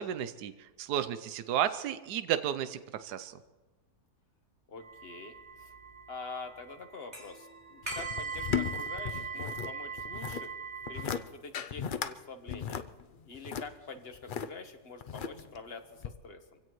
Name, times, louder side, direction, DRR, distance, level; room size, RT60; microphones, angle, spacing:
voice 1, 0.0-3.4, right 10 dB, 85° right, 11 dB, 1.2 m, -33 dB
voice 2, 4.7-5.7 6.1-10.5 10.9-12.8 13.2-16.6, left 4 dB, 40° left, 5 dB, 1.4 m, -46 dB
sound 1, 4.8-11.1, right 5 dB, 20° right, 4.7 m, -41 dB
sound 2, 7.8-9.7 10.0-10.5 10.8-11.2 11.5-12.1 12.5-14.5 15.0-15.6 16.0-16.1, left 8 dB, 75° left, 0.4 m, -36 dB
25.0 x 16.5 x 3.1 m, 1.2 s
omnidirectional pair, 1.7 m